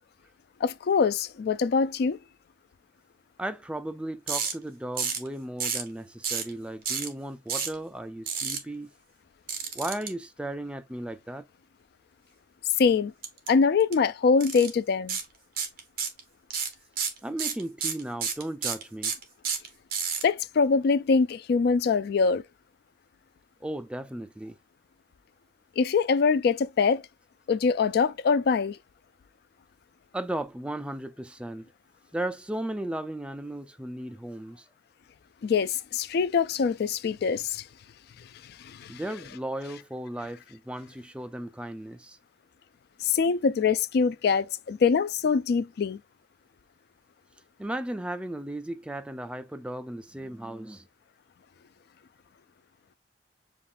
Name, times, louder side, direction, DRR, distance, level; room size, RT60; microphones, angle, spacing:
voice 1, 0.6-2.2 12.8-13.1 13.5-15.2 20.2-22.4 25.8-27.0 27.5-28.8 35.4-37.6 38.6-38.9 43.0-46.0, left 5 dB, 65° left, 0.3 m, -24 dB
voice 2, 3.4-8.9 9.7-11.5 17.2-19.2 23.6-24.6 30.1-31.7 32.1-34.7 38.9-42.2 47.6-50.9, right 1 dB, 5° right, 0.4 m, -35 dB
sound 1, 4.3-4.5 5.0-5.3 5.6-5.9 6.2-6.5 6.8-7.1 7.5-7.7 8.3-8.6 9.5-10.1 13.2-13.5 13.8-13.9 14.4-14.7 15.1-15.2 15.6-16.2 16.5-20.2, right 6 dB, 55° right, 1.1 m, -30 dB
7.0 x 2.5 x 2.4 m
head